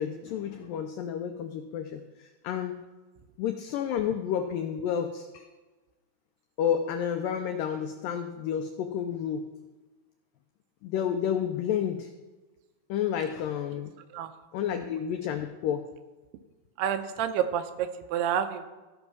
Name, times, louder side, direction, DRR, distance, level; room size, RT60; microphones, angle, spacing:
voice 1, 0.0-2.8 3.4-5.5 6.6-9.5 10.8-12.1 12.9-14.0 14.5-15.8, left 8 dB, 90° left, 6 dB, 1.9 m, -30 dB
voice 2, 16.8-18.7, right 9 dB, 85° right, 8 dB, 2.7 m, -29 dB
14.0 x 5.4 x 6.0 m, 1.2 s
omnidirectional pair, 4.7 m